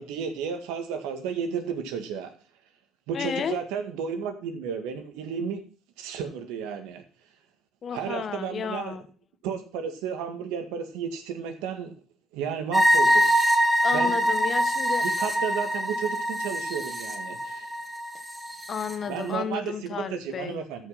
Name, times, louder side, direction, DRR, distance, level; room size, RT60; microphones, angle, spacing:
voice 1, 0.0-2.3 3.1-5.6 6.0-7.0 7.9-9.0 9.4-11.9 12.3-13.3 13.9-14.2 15.0-17.7 19.1-20.9, right 7 dB, 85° right, 7 dB, 1.9 m, -33 dB
voice 2, 3.1-3.6 7.8-9.0 13.8-15.1 18.7-20.6, left 7 dB, 45° left, 11 dB, 1.3 m, -32 dB
sound 1, 12.7-19.0, equal, 10° right, 2.5 m, -24 dB
13.5 x 5.7 x 5.7 m, 0.39 s
cardioid pair, 95°, 0 cm